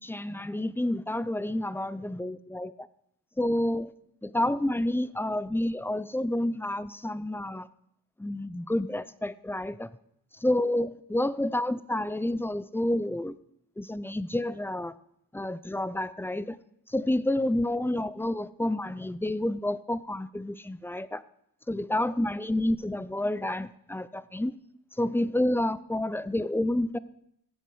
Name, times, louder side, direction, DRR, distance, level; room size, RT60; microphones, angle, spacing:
voice 1, 0.0-2.9 3.4-3.9 4.2-7.7 8.2-9.9 10.4-13.4 13.8-14.9 15.3-16.6 16.9-21.2 21.7-24.5 25.0-27.0, left 1 dB, 5° left, 16 dB, 0.5 m, -29 dB
16.5 x 7.9 x 4.8 m, 0.74 s
cardioid pair, 70°, 37 cm